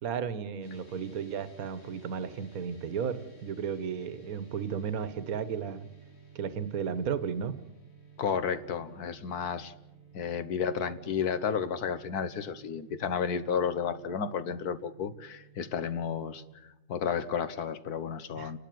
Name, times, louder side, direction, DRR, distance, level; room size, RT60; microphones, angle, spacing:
voice 1, 0.0-5.9 6.3-7.5 18.4-18.5, right 7 dB, 70° right, 13 dB, 1.5 m, -34 dB
sound 1, 0.6-16.6, right 5 dB, 45° left, 2.6 m, -56 dB
voice 2, 8.2-9.7 10.1-16.4 16.9-18.6, left 7 dB, 85° left, 12 dB, 1.7 m, -32 dB
29.5 x 12.0 x 9.3 m, 0.94 s
omnidirectional pair, 1.6 m